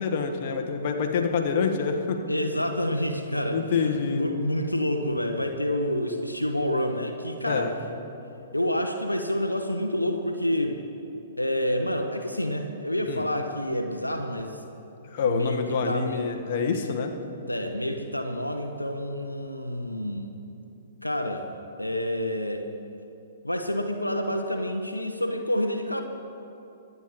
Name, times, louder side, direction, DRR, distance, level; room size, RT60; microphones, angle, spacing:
voice 1, 0.0-2.2 3.5-4.2 7.5-7.7 13.1-13.3 15.1-17.1, left 5 dB, 45° left, 4 dB, 1.5 m, -26 dB
voice 2, 2.3-7.7 8.5-10.8 11.4-14.6 15.2-16.3 17.5-20.3 21.0-21.5 21.8-22.7 23.4-26.0, left 1 dB, 85° left, 5 dB, 1.0 m, -28 dB
24.0 x 9.5 x 4.1 m, 2.9 s
figure-of-eight pair, 115°, 0 cm